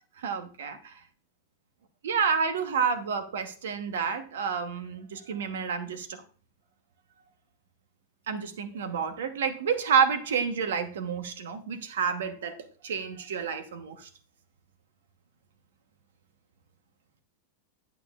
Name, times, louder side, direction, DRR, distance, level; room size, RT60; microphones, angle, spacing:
voice 1, 0.2-1.0 2.0-6.2 8.3-12.6 12.8-14.1, right 6 dB, 85° right, 1.1 m, -29 dB
11.0 x 9.1 x 2.4 m
supercardioid pair, 180°, 0 cm